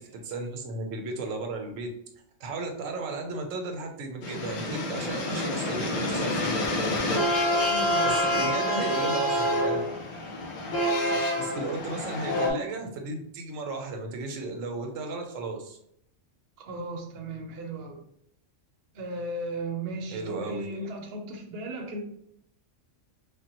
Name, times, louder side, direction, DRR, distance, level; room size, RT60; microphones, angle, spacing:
voice 1, 0.2-1.9 2.4-6.6 8.0-9.8 11.1-15.8 20.1-20.6, right 3 dB, 90° right, 4 dB, 1.0 m, -35 dB
sound 1, 4.2-12.5, left 1 dB, 85° left, 1.1 m, -27 dB
voice 2, 7.5-9.1 16.6-18.0 18.9-22.0, right 2 dB, 60° right, 2 dB, 0.8 m, -36 dB
3.3 x 2.1 x 2.8 m, 0.73 s
omnidirectional pair, 1.3 m